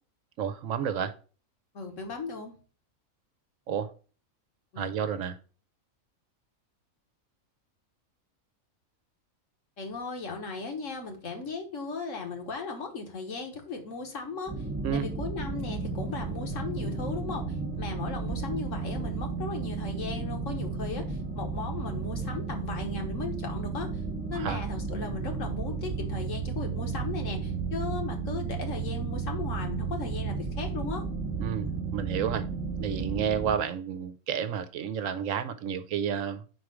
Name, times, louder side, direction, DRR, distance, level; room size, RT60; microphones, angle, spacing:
voice 1, 0.4-1.1 3.7-3.9 4.8-5.4 14.8-15.1 24.3-24.6 31.4-32.4 32.8-36.4, right 8 dB, 70° right, 10 dB, 1.0 m, -31 dB
voice 2, 1.7-2.5 4.7-4.9 9.8-14.5 14.9-17.5 17.8-23.9 24.3-31.0, left 4 dB, 65° left, 3 dB, 1.5 m, -37 dB
sound 1, 14.5-33.5, right 4 dB, 10° right, 0.6 m, -33 dB
4.7 x 4.3 x 4.9 m, 0.37 s
omnidirectional pair, 1.4 m